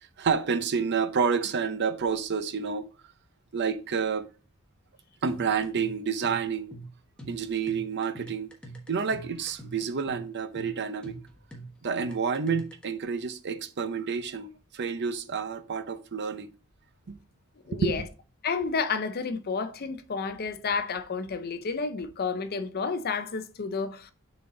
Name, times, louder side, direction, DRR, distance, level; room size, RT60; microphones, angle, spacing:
voice 1, 0.2-2.9 3.5-4.3 5.2-6.8 7.3-8.5 8.9-11.1 11.8-16.5 17.1-17.2 17.7-18.1, right 6 dB, 55° right, 0.6 m, -29 dB
sound 1, 5.3-12.8, right 2 dB, 5° left, 1.2 m, -45 dB
voice 2, 17.7-18.0 18.4-24.1, left 5 dB, 45° left, 0.6 m, -31 dB
7.0 x 4.0 x 3.8 m
head